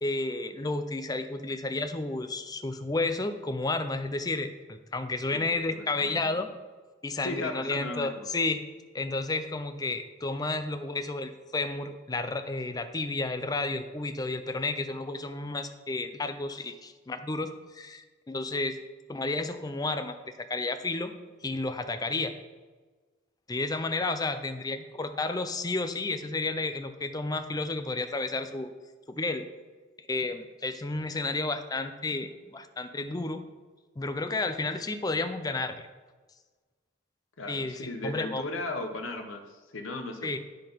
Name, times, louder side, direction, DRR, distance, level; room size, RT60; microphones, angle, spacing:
voice 1, 0.0-6.5 7.0-8.6 8.9-18.8 19.1-21.1 21.4-22.3 23.5-28.7 29.1-29.4 30.1-33.4 34.0-35.7 37.5-38.4 40.2-40.4, left 3 dB, 20° left, 9 dB, 0.4 m, -31 dB
voice 2, 5.3-6.4 7.2-8.3 37.4-40.4, left 2 dB, 75° left, 5 dB, 0.9 m, -36 dB
9.9 x 3.9 x 5.2 m, 1.4 s
head